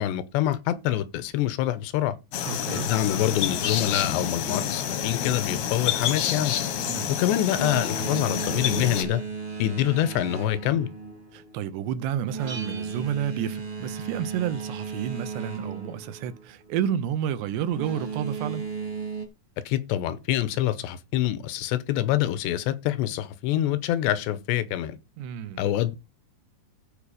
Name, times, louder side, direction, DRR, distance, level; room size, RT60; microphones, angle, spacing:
voice 1, 0.0-2.2 2.7-6.5 7.1-9.2 9.6-10.9 19.7-25.0 25.6-26.0, left 12 dB, 85° left, 3.0 m, -26 dB
sound 1, 2.3-9.0, left 9 dB, 70° left, 1.7 m, -28 dB
voice 2, 2.5-2.9 6.8-7.2 11.3-18.7 25.2-25.6, right 9 dB, 80° right, 2.9 m, -30 dB
Boat Water vehicle, 7.4-16.9 17.6-19.2, right 4 dB, 25° right, 1.0 m, -35 dB
Bell, 12.5-14.3, right 3 dB, 55° right, 0.9 m, -44 dB
14.5 x 4.8 x 4.9 m
omnidirectional pair, 4.9 m